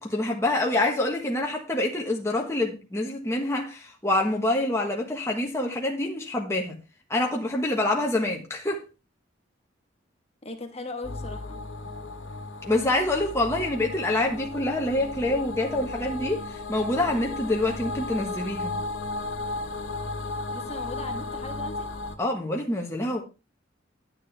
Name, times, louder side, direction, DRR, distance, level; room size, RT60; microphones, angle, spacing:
voice 1, 0.0-6.8 7.1-8.8 12.6-18.7 22.2-23.2, left 1 dB, 15° left, 1.3 m, -26 dB
voice 2, 10.4-11.6 20.5-21.9, left 2 dB, 30° left, 1.5 m, -38 dB
sound 1, 11.0-22.2, left 2 dB, 70° left, 1.4 m, -35 dB
10.5 x 9.7 x 3.4 m
head